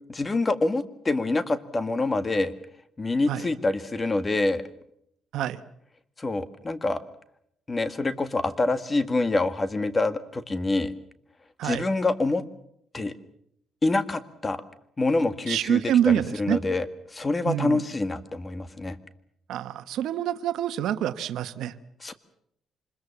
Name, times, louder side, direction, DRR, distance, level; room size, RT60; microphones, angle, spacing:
voice 1, 0.1-2.5 3.0-4.6 6.2-7.0 7.7-10.9 11.6-12.4 12.9-13.1 13.8-14.6 15.0-19.0 22.0-22.1, left 2 dB, 25° left, 12 dB, 1.8 m, -26 dB
voice 2, 15.5-16.6 17.5-17.8 19.5-21.7, right 10 dB, 80° right, 12 dB, 1.1 m, -26 dB
25.5 x 21.5 x 7.3 m, 0.73 s
cardioid pair, 90°, 0 cm